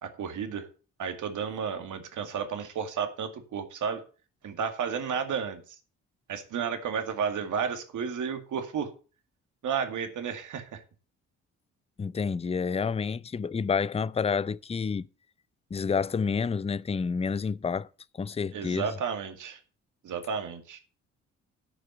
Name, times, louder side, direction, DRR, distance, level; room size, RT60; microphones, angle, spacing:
voice 1, 0.0-0.7 1.0-4.0 4.4-5.8 6.3-8.9 9.6-10.8 18.5-19.6 20.0-20.8, right 6 dB, 65° right, 2.1 m, -32 dB
voice 2, 12.0-15.1 15.7-17.9 18.2-18.9, left 5 dB, 20° left, 0.5 m, -29 dB
9.6 x 5.5 x 7.9 m
supercardioid pair, 50°, 32 cm